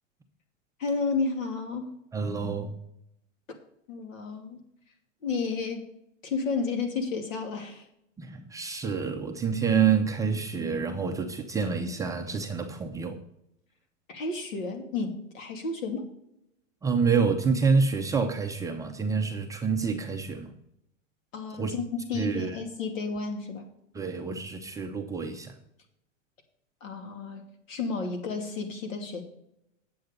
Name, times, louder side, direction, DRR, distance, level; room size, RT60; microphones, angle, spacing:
voice 1, 0.8-1.9 3.9-4.6 5.2-5.9 6.2-7.8 14.1-16.1 21.3-23.7 26.8-29.2, left 4 dB, 80° left, 5 dB, 2.7 m, -32 dB
voice 2, 2.1-2.8 8.2-13.2 16.8-20.5 21.6-21.7 22.1-22.6 23.9-25.5, right 5 dB, 10° right, 2 dB, 0.5 m, -27 dB
9.4 x 7.8 x 5.2 m, 0.78 s
hypercardioid pair, 140°, 39 cm